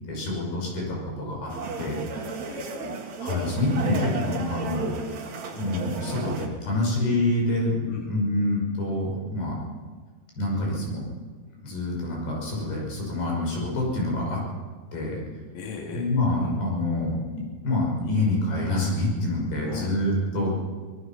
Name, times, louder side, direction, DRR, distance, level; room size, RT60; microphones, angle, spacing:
voice 1, 0.1-1.5 1.8-2.0 3.2-4.9 5.5-9.6 10.4-11.0 11.6-14.4 14.9-15.2 15.9-17.2 17.6-20.5, left 1 dB, 85° left, -1 dB, 7.9 m, -26 dB
sound 1, 1.5-6.5, right 4 dB, 55° right, 2.9 m, -34 dB
voice 2, 2.4-3.0 7.9-8.1 15.5-16.1 16.4-16.5 19.6-19.9, left 5 dB, 60° left, 0 dB, 3.6 m, -38 dB
24.5 x 18.5 x 6.0 m, 1.5 s
omnidirectional pair, 4.5 m